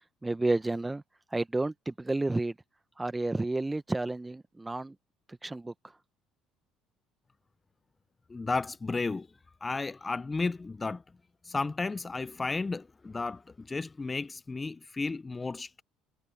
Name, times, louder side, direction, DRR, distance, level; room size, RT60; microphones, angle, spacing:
voice 1, 0.2-1.0 1.3-2.5 3.0-4.9 5.4-5.7, right 2 dB, 15° right, 1.3 m, -30 dB
voice 2, 8.3-9.3 9.6-11.0 11.4-15.8, left 3 dB, 25° left, 0.8 m, -33 dB
hypercardioid pair, 65°, 0 cm